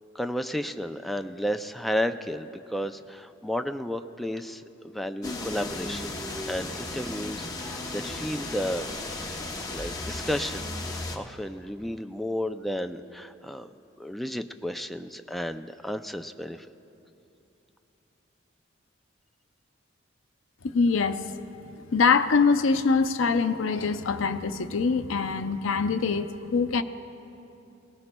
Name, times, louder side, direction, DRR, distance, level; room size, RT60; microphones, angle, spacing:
voice 1, 0.1-6.2 6.4-8.9 9.7-13.7 14.0-16.7, equal, ahead, 7 dB, 0.3 m, -32 dB
sound 1, 5.2-11.2, left 2 dB, 20° left, 0.8 m, -35 dB
voice 2, 20.6-21.2 21.9-26.8, left 4 dB, 70° left, 10 dB, 0.5 m, -24 dB
21.0 x 18.5 x 2.2 m, 2.9 s
head